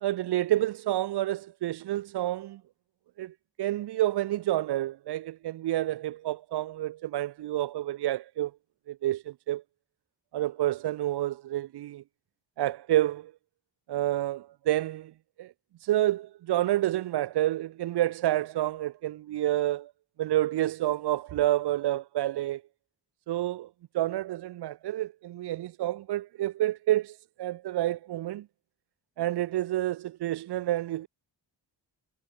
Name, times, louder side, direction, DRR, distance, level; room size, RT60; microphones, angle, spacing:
voice 1, 0.0-2.6 3.2-8.5 8.9-9.6 10.3-12.0 12.6-13.3 13.9-15.1 15.4-15.5 15.8-19.9 20.2-22.6 23.3-23.7 23.9-28.5 29.2-31.1, right 14 dB, 60° right, 0.6 m, -29 dB
wide cardioid pair, 175°, 45 cm